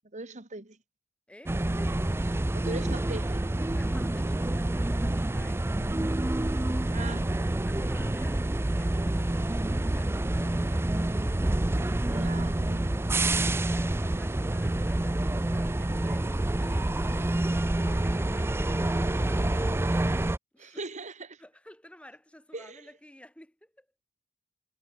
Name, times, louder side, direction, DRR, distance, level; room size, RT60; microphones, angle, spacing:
voice 1, 0.1-0.8 2.2-3.5 6.9-7.4 12.1-13.1 20.6-21.4 22.5-22.9, right 2 dB, 35° right, 2.0 m, -40 dB
voice 2, 1.3-1.6 3.7-5.8 7.5-10.9 13.4-20.1 20.5-20.8 21.4-23.9, left 1 dB, 5° left, 3.5 m, -51 dB
sound 1, 1.5-20.4, right 1 dB, 10° right, 0.4 m, -27 dB
head